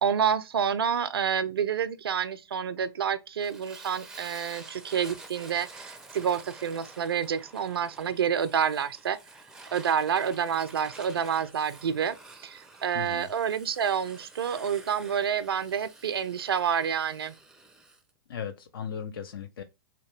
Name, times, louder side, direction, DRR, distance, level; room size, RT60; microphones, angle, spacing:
voice 1, 0.0-9.2 9.7-12.2 12.4-17.4, right 8 dB, 75° right, 0.4 m, -28 dB
Fire, 3.4-18.0, right 3 dB, 5° right, 0.4 m, -49 dB
voice 2, 12.9-13.3 18.3-19.6, left 7 dB, 65° left, 0.4 m, -37 dB
2.8 x 2.2 x 3.2 m
hypercardioid pair, 110°, 13 cm